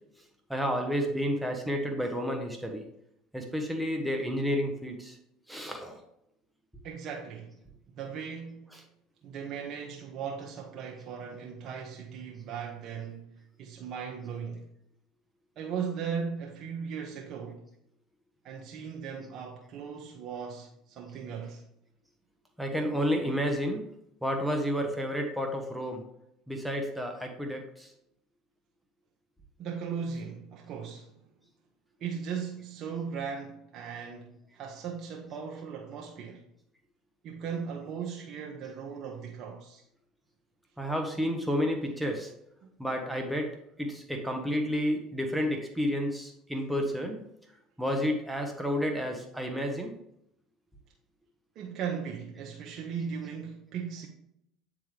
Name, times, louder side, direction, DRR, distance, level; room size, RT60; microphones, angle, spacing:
voice 1, 0.5-2.8 3.3-5.2 5.5-6.0 22.6-23.8 24.2-26.0 26.5-27.9 40.8-42.3 42.8-43.5 43.8-47.2 47.8-49.9, equal, 5° right, 1.0 m, -30 dB
voice 2, 6.8-7.6 7.9-8.8 9.2-14.7 15.6-17.7 18.4-21.6 29.6-31.2 32.0-36.4 37.2-39.8 42.6-42.7 51.6-54.1, right 6 dB, 55° right, 0.8 m, -38 dB
8.8 x 3.6 x 3.3 m
hypercardioid pair, 80°, 0 cm